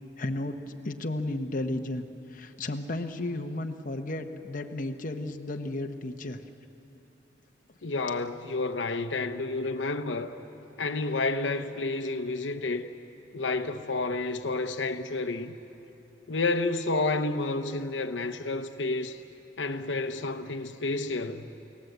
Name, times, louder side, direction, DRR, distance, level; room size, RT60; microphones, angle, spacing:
voice 1, 0.2-0.6 0.8-2.1 2.3-6.4, left 2 dB, 50° left, 1.0 m, -33 dB
voice 2, 7.8-10.3 10.8-12.9 13.3-15.6 16.3-19.2 19.6-21.5, left 3 dB, 85° left, 0.9 m, -30 dB
29.5 x 17.5 x 8.0 m
head